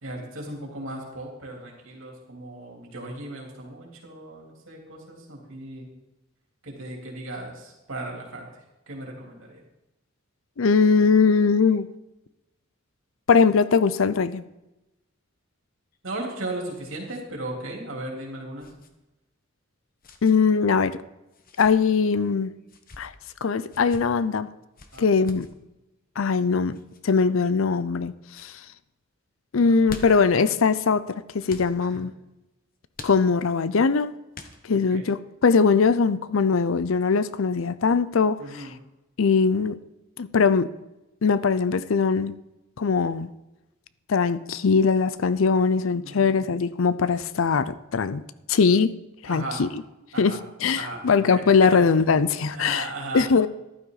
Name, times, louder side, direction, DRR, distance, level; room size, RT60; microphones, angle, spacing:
voice 1, 0.0-5.9 6.6-8.5 8.9-9.6 16.0-18.7 24.9-25.1 29.6-29.9 31.8-32.0 34.9-35.1 38.4-38.7 46.0-46.3 49.3-49.6 50.1-50.4 50.8-51.8 52.5-53.3, right 2 dB, 70° right, -1 dB, 3.5 m, -36 dB
voice 2, 10.6-11.9 13.3-14.4 20.2-21.0 21.6-22.5 23.0-23.1 23.4-24.5 25.0-25.5 26.2-26.8 27.0-28.5 29.5-31.0 31.3-32.1 33.0-34.1 34.7-38.7 39.2-39.8 40.2-40.7 41.2-42.3 42.8-43.3 44.1-48.2 48.5-48.9 49.2-49.7 50.2-52.9 53.1-53.5, left 5 dB, 70° left, 16 dB, 0.5 m, -21 dB
sound 1, 15.9-17.3 17.5-17.7 18.6-18.9 20.0-20.4 21.3-21.7 22.6-23.0 23.7-24.0 24.8-25.5 26.7-27.0 27.6-28.0 28.3-28.5 29.6-30.3 31.5-31.7 32.9-33.6 34.3-34.9, left 3 dB, 45° left, 1.1 m, -44 dB
14.0 x 12.0 x 4.0 m, 0.97 s
head